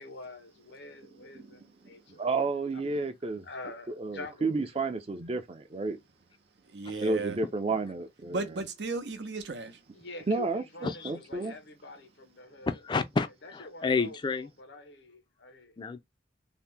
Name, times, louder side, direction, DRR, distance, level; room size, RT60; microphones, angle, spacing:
voice 1, 0.0-2.3 2.7-3.2 3.4-4.6 9.9-12.8 13.4-15.8, left 2 dB, 85° left, 0.7 m, -46 dB
voice 2, 2.2-3.5 4.0-6.0 7.0-8.5 10.3-11.6, right 3 dB, 35° right, 0.4 m, -31 dB
voice 3, 6.7-7.4 8.3-9.8, right 3 dB, 85° right, 0.7 m, -35 dB
voice 4, 12.7-14.5 15.8-16.0, left 4 dB, 25° left, 0.3 m, -30 dB
2.8 x 2.1 x 3.3 m
head